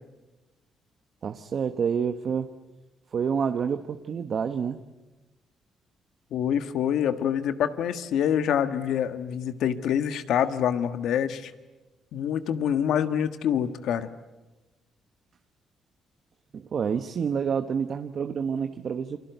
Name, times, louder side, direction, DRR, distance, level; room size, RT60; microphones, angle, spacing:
voice 1, 1.2-2.5 3.1-4.8 16.5-19.2, right 6 dB, 55° right, 8 dB, 1.1 m, -28 dB
voice 2, 6.3-11.5 12.1-14.1, left 9 dB, 80° left, 10 dB, 1.5 m, -26 dB
28.5 x 24.0 x 8.1 m, 1.1 s
cardioid pair, 90°, 0 cm